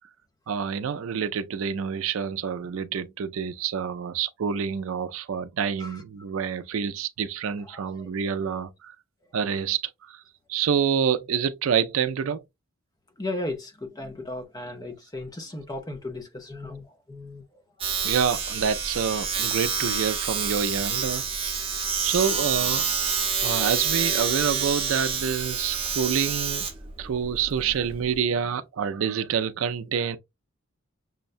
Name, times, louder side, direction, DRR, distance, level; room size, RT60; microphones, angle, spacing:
voice 1, 0.5-8.9 9.3-9.8 10.5-12.4 18.0-21.2 22.0-22.8 23.4-26.7 27.0-30.2, right 7 dB, 70° right, 0.4 m, -27 dB
voice 2, 7.6-8.1 8.5-8.6 13.2-17.4, left 2 dB, 20° left, 0.6 m, -36 dB
Domestic sounds home sounds, 17.8-28.2, right 6 dB, 25° right, 0.8 m, -28 dB
6.1 x 2.2 x 2.5 m
head